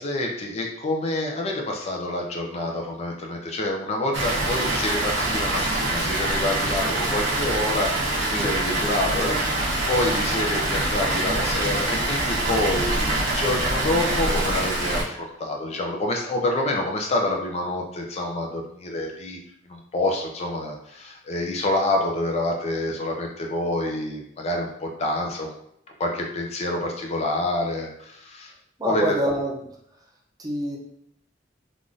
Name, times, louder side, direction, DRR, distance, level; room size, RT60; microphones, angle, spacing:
voice 1, 0.0-19.4 19.7-25.5 26.0-28.5 28.8-29.2, left 1 dB, 35° left, 1 dB, 0.4 m, -27 dB
Water, 4.1-15.0, right 1 dB, 75° right, 0.7 m, -25 dB
voice 2, 28.8-29.5 30.4-30.8, right 1 dB, 20° right, -1 dB, 0.6 m, -25 dB
3.4 x 2.4 x 2.5 m, 0.73 s
head